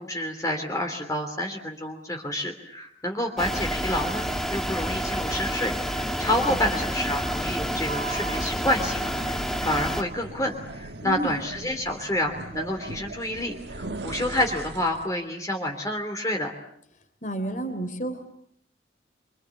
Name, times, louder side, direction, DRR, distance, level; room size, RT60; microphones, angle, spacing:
voice 1, 0.0-16.5, left 1 dB, 15° left, 3 dB, 3.1 m, -29 dB
sound 1, 3.4-10.0, equal, ahead, 2.0 m, -29 dB
sound 2, 7.7-15.2, right 2 dB, 65° right, 1.5 m, -39 dB
voice 2, 11.0-11.3 17.2-18.2, right 2 dB, 40° left, 9 dB, 3.7 m, -30 dB
26.5 x 26.0 x 8.5 m, 0.70 s
head